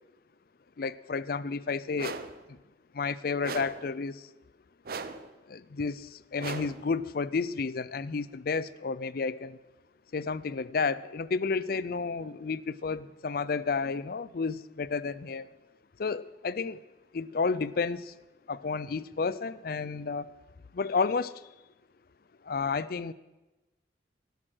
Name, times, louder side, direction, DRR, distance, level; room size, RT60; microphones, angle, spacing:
voice 1, 0.8-2.2 2.5-2.6 2.9-4.3 5.5-9.6 10.1-15.5 16.0-16.8 17.1-18.1 18.5-20.3 20.7-21.4 22.4-23.1, left 4 dB, 55° left, 17 dB, 0.5 m, -31 dB
sound 1, 2.0-2.4 3.4-3.9 4.8-5.3 6.4-6.9, right 4 dB, 55° right, 0.7 m, -38 dB
12.5 x 12.5 x 6.2 m, 1.1 s
head